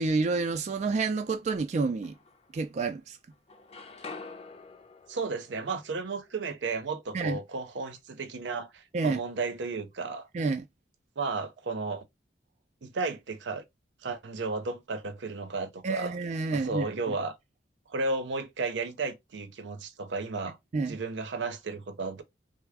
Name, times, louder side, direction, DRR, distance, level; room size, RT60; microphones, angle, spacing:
voice 1, 0.0-2.1 2.5-3.2 7.1-7.4 8.9-9.2 10.3-10.6 15.8-17.1 20.7-21.0, right 4 dB, 40° right, 0.3 m, -29 dB
sound 1, 0.6-1.5 2.0-3.1 3.3-7.3, left 4 dB, 35° left, 0.5 m, -48 dB
voice 2, 5.1-10.3 11.2-12.1 12.8-13.6 14.0-16.2 16.5-17.4 17.9-20.6 20.9-22.2, right 3 dB, 85° right, 0.6 m, -33 dB
3.3 x 2.0 x 3.4 m
head